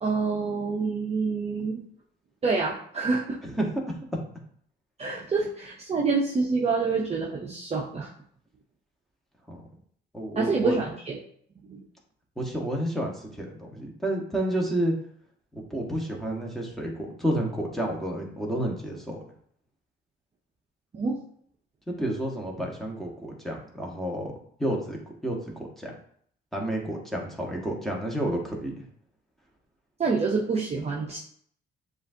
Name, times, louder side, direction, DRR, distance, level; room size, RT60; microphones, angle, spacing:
voice 1, 0.0-1.8 2.4-3.4 5.0-8.1 10.4-11.2 11.6-11.8 20.9-21.2 30.0-31.2, right 4 dB, 30° right, -3 dB, 0.7 m, -27 dB
voice 2, 3.4-4.0 9.5-9.6 10.1-10.8 12.4-14.9 15.5-19.2 21.9-24.3 24.6-25.9 26.5-28.7, right 1 dB, ahead, -1 dB, 1.2 m, -30 dB
7.0 x 2.5 x 2.7 m, 0.62 s
cardioid pair, 90°, 20 cm